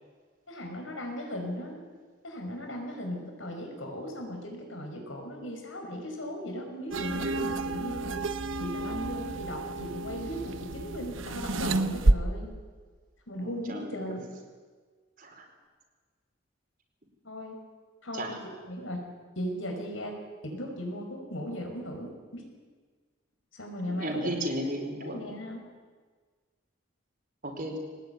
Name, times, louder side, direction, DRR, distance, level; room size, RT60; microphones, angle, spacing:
voice 1, 0.5-1.8 2.2-8.2 8.6-12.5 13.3-14.2 17.2-17.6 18.0-18.3 18.6-19.0 19.4-20.1 20.4-22.4 23.5-24.6 25.0-25.6, equal, 80° left, 3 dB, 5.9 m, -37 dB
sound 1, 6.9-12.1, right 2 dB, 80° right, 1.0 m, -29 dB
voice 2, 13.4-14.2 15.2-15.4 18.1-18.4 23.9-25.2 27.4-27.8, right 1 dB, 45° right, 3 dB, 4.4 m, -34 dB
22.5 x 19.5 x 9.5 m, 1.5 s
head